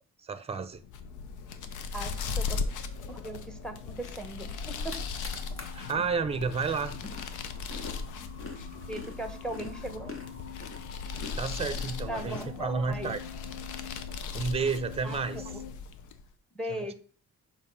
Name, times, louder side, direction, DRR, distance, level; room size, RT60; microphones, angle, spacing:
voice 1, 0.2-0.8 5.7-6.9 11.4-13.2 14.3-15.5, right 5 dB, 20° right, 12 dB, 0.6 m, -31 dB
sound 1, 0.8-16.3, left 5 dB, 80° left, 0.7 m, -38 dB
sound 2, 1.0-15.7, left 8 dB, 30° left, 1.5 m, -48 dB
voice 2, 1.9-2.6 3.1-5.0 5.9-6.0 8.9-10.1 12.1-13.2 15.0-15.6 16.5-16.9, right 1 dB, ahead, 7 dB, 1.0 m, -38 dB
sound 3, 4.7-5.9 6.3-13.1, left 4 dB, 45° left, 1.4 m, -45 dB
6.8 x 2.6 x 5.4 m, 0.42 s
cardioid pair, 90°, 30 cm